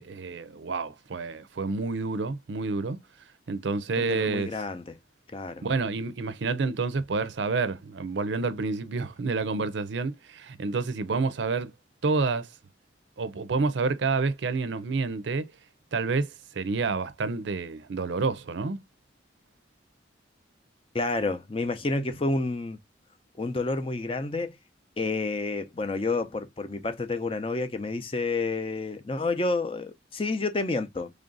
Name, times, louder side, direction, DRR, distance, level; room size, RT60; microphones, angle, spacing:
voice 1, 0.0-3.0 3.5-4.5 5.6-11.7 12.0-12.5 13.2-15.5 15.9-18.8, right 4 dB, 75° right, 0.5 m, -29 dB
voice 2, 4.0-5.0 5.3-5.6 20.9-22.8 23.4-24.6 25.0-31.1, left 3 dB, 30° left, 0.5 m, -29 dB
3.3 x 2.5 x 3.8 m
head